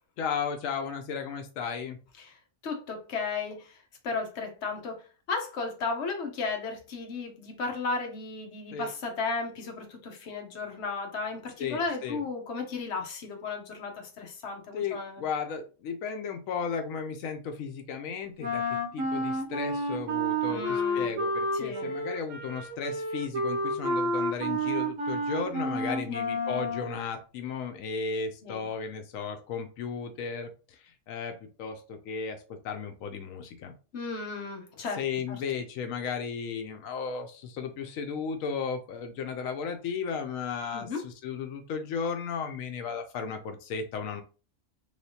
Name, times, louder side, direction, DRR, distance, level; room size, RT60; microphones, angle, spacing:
voice 1, 0.2-2.0 8.7-8.9 11.6-12.2 14.7-33.7 34.9-44.2, left 6 dB, 90° left, 6 dB, 1.0 m, -35 dB
voice 2, 2.6-3.8 4.0-15.2 20.5-21.1 21.6-21.9 28.4-28.7 33.9-35.0 40.7-41.0, left 4 dB, 60° left, 2 dB, 1.1 m, -34 dB
Wind instrument woodwind instrument, 18.4-27.0, equal, 75° right, 1.1 m, -30 dB
3.3 x 3.0 x 2.7 m, 0.35 s
omnidirectional pair, 1.3 m